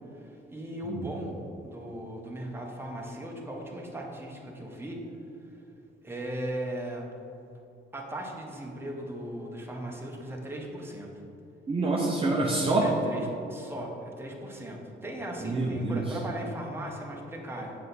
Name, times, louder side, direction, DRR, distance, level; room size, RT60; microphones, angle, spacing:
voice 1, 0.1-1.4 1.6-5.0 6.0-7.0 7.9-11.1 12.8-17.8, right 1 dB, 10° right, -1 dB, 1.3 m, -38 dB
voice 2, 11.7-12.9 15.4-16.2, right 2 dB, 30° right, -4 dB, 0.9 m, -27 dB
7.5 x 5.7 x 4.2 m, 2.9 s
cardioid pair, 90°, 20 cm